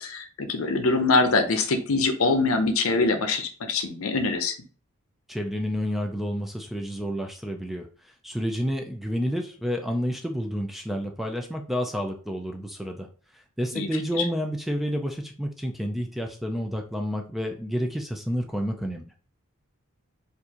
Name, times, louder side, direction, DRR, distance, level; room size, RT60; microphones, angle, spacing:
voice 1, 0.0-4.5 13.7-13.9 14.1-14.2, left 3 dB, 70° left, 7 dB, 0.6 m, -24 dB
voice 2, 5.3-13.1 13.3-19.2, equal, ahead, 3 dB, 0.3 m, -30 dB
4.6 x 2.6 x 2.8 m, 0.40 s
head